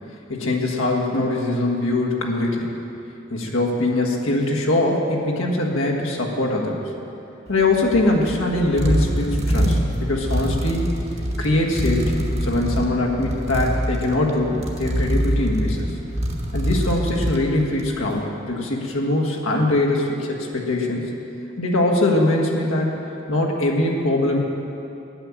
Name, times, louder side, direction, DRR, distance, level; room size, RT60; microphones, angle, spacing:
voice 1, 0.3-2.7 3.3-6.8 7.5-10.9 11.4-15.9 16.5-21.1 21.6-22.9 23.3-24.4, left 2 dB, 85° left, -1 dB, 1.6 m, -22 dB
sound 1, 7.5-18.1, equal, 30° right, 1.1 m, -25 dB
9.6 x 8.9 x 7.3 m, 2.8 s
head